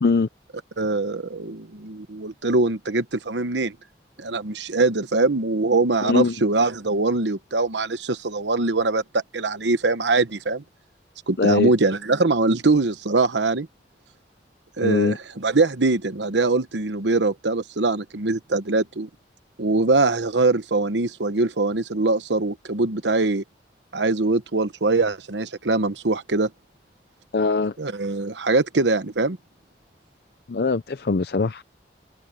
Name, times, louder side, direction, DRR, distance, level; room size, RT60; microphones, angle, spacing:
voice 1, 0.8-3.7 4.2-9.0 9.3-10.6 11.3-13.7 14.8-19.1 19.6-23.4 23.9-26.5 27.8-29.4, right 3 dB, 85° right, 1.1 m, -22 dB
voice 2, 6.0-6.3 11.4-11.7 14.8-15.2 27.3-27.7 30.5-31.6, left 4 dB, 60° left, 0.6 m, -21 dB
head